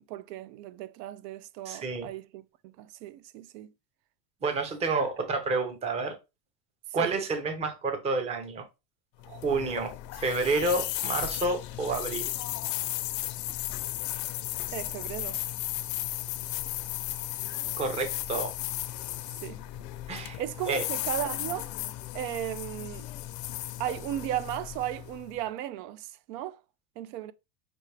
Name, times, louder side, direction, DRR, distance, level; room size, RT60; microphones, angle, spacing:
voice 1, 0.0-3.7 7.0-7.1 14.7-15.4 19.4-19.6 20.2-21.7 22.1-23.1 23.8-26.6 27.0-27.3, right 13 dB, 80° right, 0.6 m, -36 dB
voice 2, 1.7-2.1 4.4-6.2 6.9-8.6 9.3-12.3 17.8-18.6 20.1-20.4 20.7-20.8, right 3 dB, 15° right, 0.5 m, -29 dB
sound 1, 9.2-25.4, left 15 dB, 85° left, 0.7 m, -35 dB
6.1 x 2.5 x 3.2 m
cardioid pair, 155°, 48 cm